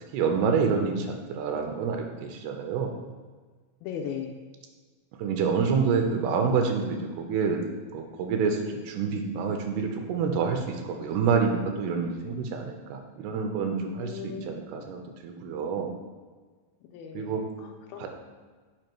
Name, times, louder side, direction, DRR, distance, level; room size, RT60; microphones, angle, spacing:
voice 1, 0.1-2.9 5.2-7.6 7.9-16.0 17.1-17.4 18.0-18.1, right 5 dB, 85° right, 4 dB, 2.7 m, -27 dB
voice 2, 3.8-4.4 14.0-14.9 16.9-18.1, left 7 dB, 80° left, 3 dB, 2.2 m, -38 dB
6.4 x 5.0 x 4.6 m, 1.4 s
omnidirectional pair, 4.6 m